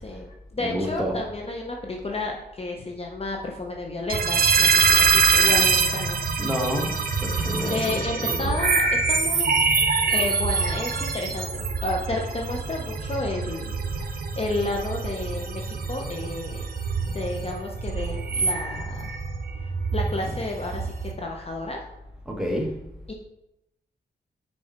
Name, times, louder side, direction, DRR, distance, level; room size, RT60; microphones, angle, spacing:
voice 1, 0.0-6.2 7.5-9.5 10.1-16.7 17.1-19.1 19.9-21.9 23.1-23.2, left 2 dB, 35° left, 1 dB, 0.7 m, -32 dB
voice 2, 0.6-1.2 6.4-8.5 18.0-18.1 22.2-22.8, equal, 5° right, -1 dB, 1.5 m, -29 dB
sound 1, 4.1-21.1, right 5 dB, 55° right, 1.0 m, -24 dB
6.5 x 4.7 x 4.2 m, 0.90 s
wide cardioid pair, 90°, 18 cm